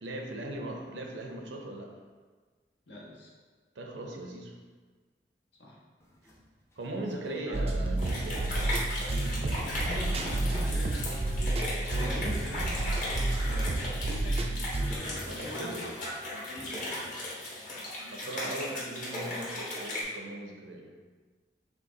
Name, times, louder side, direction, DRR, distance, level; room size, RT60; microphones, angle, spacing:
voice 1, 0.0-2.0 3.8-4.5 6.8-8.5 9.0-9.7 15.2-16.0 18.1-20.9, right 1 dB, 85° right, 2 dB, 0.7 m, -39 dB
voice 2, 2.9-3.3 5.6-5.8 7.1-7.7 9.6-14.6 15.3-15.9 16.5-17.2, equal, 75° left, -4 dB, 1.2 m, -43 dB
sound 1, 6.0-8.4 9.6-9.7 10.2-17.6, equal, 15° left, 0.6 m, -50 dB
sound 2, 7.5-15.0, right 2 dB, 35° right, 0.4 m, -30 dB
sound 3, 8.0-20.0, left 1 dB, 45° left, 1.3 m, -37 dB
5.6 x 2.4 x 3.8 m, 1.4 s
head